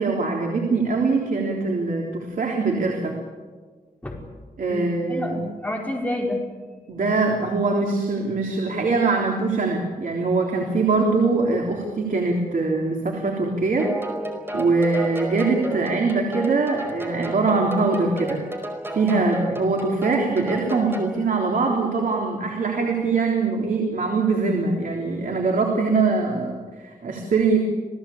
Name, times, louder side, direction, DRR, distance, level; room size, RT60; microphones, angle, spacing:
voice 1, 0.0-3.1 4.6-5.3 6.9-13.9 14.5-18.4 18.9-27.6, right 3 dB, 70° right, 0 dB, 3.6 m, -22 dB
voice 2, 4.7-6.4, left 1 dB, 10° left, -1 dB, 4.8 m, -29 dB
sound 1, 13.8-21.2, right 1 dB, 15° right, 5.0 m, -32 dB
29.0 x 18.5 x 8.6 m, 1.5 s
wide cardioid pair, 120°, 15 cm